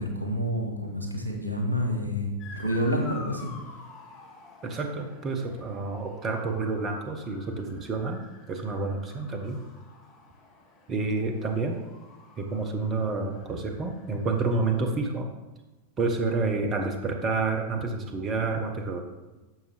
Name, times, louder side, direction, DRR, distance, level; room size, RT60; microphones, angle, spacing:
voice 1, 0.0-3.5, equal, 85° right, 2 dB, 1.8 m, -28 dB
Motor vehicle (road) / Siren, 2.4-15.0, left 3 dB, 30° left, 2.4 m, -49 dB
voice 2, 4.6-9.6 10.9-11.8 12.4-15.3 16.0-19.0, right 3 dB, 25° right, 5 dB, 1.2 m, -29 dB
12.0 x 7.2 x 3.5 m, 1.1 s
figure-of-eight pair, 90°, 0 cm